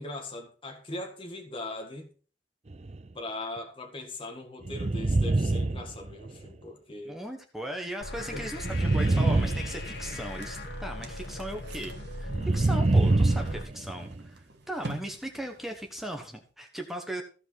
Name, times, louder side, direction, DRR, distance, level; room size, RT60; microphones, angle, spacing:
voice 1, 0.0-2.1 3.1-7.1 8.3-8.5, left 2 dB, 30° left, 1.9 m, -39 dB
sound 1, 2.7-3.1 4.6-6.5 8.6-10.3 12.3-14.2, right 2 dB, 35° right, 0.5 m, -26 dB
voice 2, 7.0-17.2, right 1 dB, ahead, 1.2 m, -38 dB
sound 2, 8.0-13.6, left 1 dB, 65° left, 2.8 m, -39 dB
sound 3, 9.9-16.5, right 2 dB, 65° right, 1.5 m, -47 dB
15.5 x 5.4 x 5.9 m
head